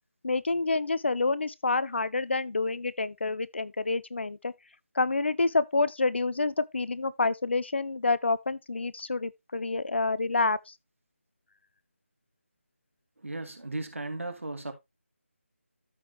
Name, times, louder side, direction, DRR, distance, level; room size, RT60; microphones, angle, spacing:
voice 1, 0.2-4.5 4.9-10.7, left 3 dB, 55° left, 0.7 m, -28 dB
voice 2, 13.2-14.7, right 2 dB, 70° right, 2.6 m, -36 dB
13.5 x 5.0 x 2.9 m
figure-of-eight pair, 160°, 7 cm